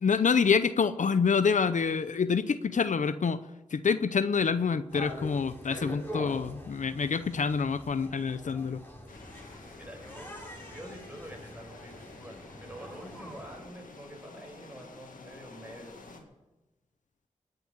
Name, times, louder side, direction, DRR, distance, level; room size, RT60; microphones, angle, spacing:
voice 1, 0.0-8.8, left 5 dB, 65° left, 12 dB, 0.6 m, -27 dB
sound 1, 4.9-13.6, equal, 15° left, 7.7 m, -44 dB
sound 2, 9.1-16.2, left 3 dB, 85° left, 2.1 m, -50 dB
voice 2, 9.8-10.3 10.7-16.2, equal, 15° right, 2 dB, 5.0 m, -47 dB
18.5 x 6.7 x 9.8 m, 1.0 s
cardioid pair, 45°, 14 cm